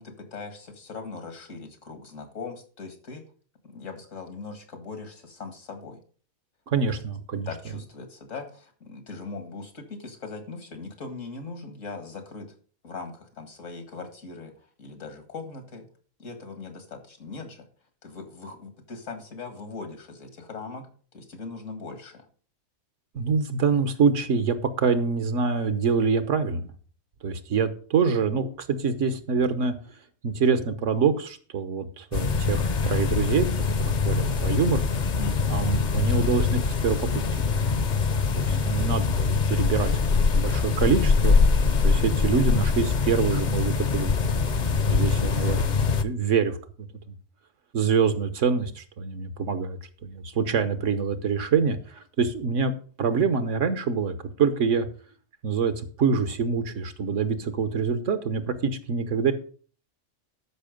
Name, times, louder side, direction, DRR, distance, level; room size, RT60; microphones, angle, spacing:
voice 1, 0.0-3.3 3.6-6.0 6.8-6.9 7.5-12.5 12.8-15.9 16.2-17.7 18.0-22.3 35.2-35.6 38.5-38.8, left 4 dB, 85° left, 7 dB, 2.3 m, -40 dB
voice 2, 6.7-7.5 23.1-26.7 27.2-29.7 30.2-34.8 35.5-37.5 38.3-39.9 40.2-41.4 41.8-44.1 44.8-46.6 47.7-52.7 53.0-54.9 55.4-59.3, right 5 dB, 75° right, 10 dB, 1.4 m, -25 dB
sound 1, 32.1-46.0, left 4 dB, 45° left, 0.7 m, -23 dB
13.0 x 5.6 x 5.2 m, 0.41 s
omnidirectional pair, 1.3 m